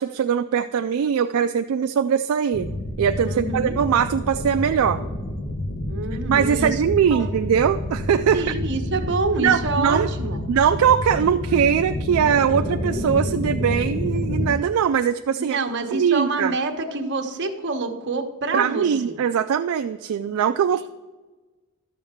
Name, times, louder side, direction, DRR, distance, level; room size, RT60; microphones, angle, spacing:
voice 1, 0.0-2.7 3.0-5.0 6.3-8.6 9.4-10.1 10.5-15.6 15.9-16.5 18.5-20.9, right 8 dB, 70° right, 7 dB, 0.3 m, -21 dB
sound 1, 2.5-14.5, left 1 dB, 65° left, 1.1 m, -28 dB
voice 2, 3.2-3.8 5.9-6.8 7.1-7.3 8.3-10.4 15.4-19.2, right 3 dB, 55° right, 5 dB, 1.0 m, -27 dB
12.0 x 6.9 x 3.6 m, 1.2 s
head